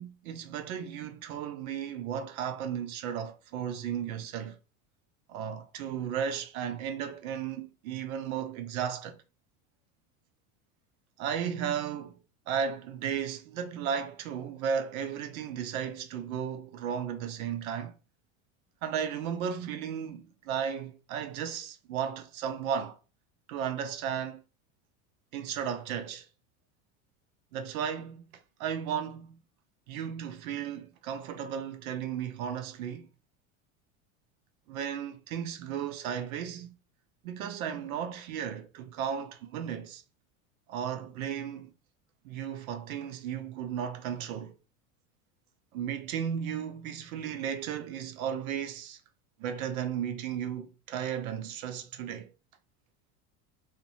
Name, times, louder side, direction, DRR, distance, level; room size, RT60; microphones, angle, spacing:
voice 1, 0.0-4.6 5.3-9.2 11.2-12.2 12.5-18.0 18.8-23.0 23.5-24.4 25.3-26.3 27.5-29.4 29.9-33.1 34.7-36.7 37.2-40.0 40.7-41.7 42.2-44.5 45.7-49.0 49.4-52.3, right 8 dB, 85° right, 0.6 m, -35 dB
2.6 x 2.1 x 2.6 m
hypercardioid pair, 95°, 42 cm